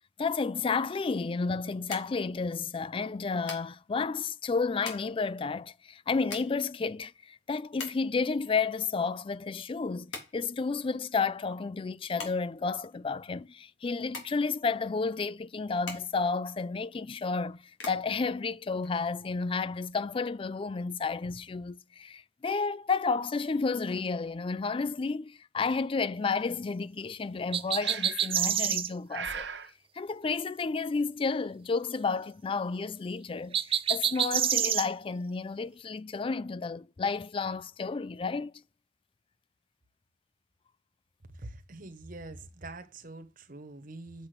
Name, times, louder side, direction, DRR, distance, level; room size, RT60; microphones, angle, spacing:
voice 1, 0.2-29.4 30.0-38.5, left 4 dB, 30° left, 0.4 m, -31 dB
sound 1, 0.9-19.5, left 4 dB, 85° left, 3.4 m, -47 dB
sound 2, 27.5-28.9 33.5-34.9, right 9 dB, 30° right, 0.4 m, -27 dB
Breathing, 27.8-28.4 29.1-29.7, right 6 dB, 70° right, 1.3 m, -38 dB
voice 2, 41.3-44.3, right 2 dB, 50° right, 1.2 m, -45 dB
7.2 x 6.1 x 4.9 m
head